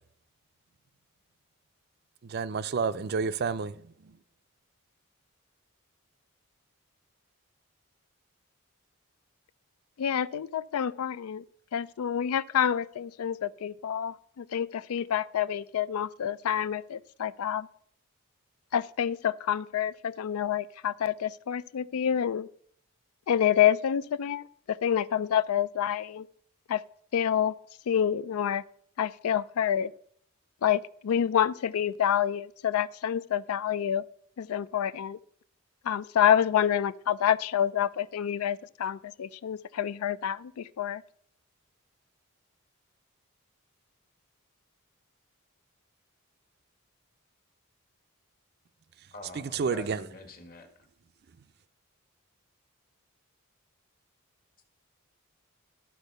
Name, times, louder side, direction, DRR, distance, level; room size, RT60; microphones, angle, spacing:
voice 1, 2.2-4.2 49.3-50.1, right 5 dB, 45° right, 0.4 m, -30 dB
voice 2, 10.0-11.4 11.7-17.7 18.7-22.5 23.3-26.3 26.7-26.8 27.1-27.5 27.9-28.6 29.0-29.9 30.6-34.0 34.4-35.2 35.8-41.0, left 9 dB, 80° left, 0.4 m, -28 dB
voice 3, 49.1-50.7, left 2 dB, 40° left, 1.5 m, -45 dB
12.5 x 4.6 x 6.6 m
head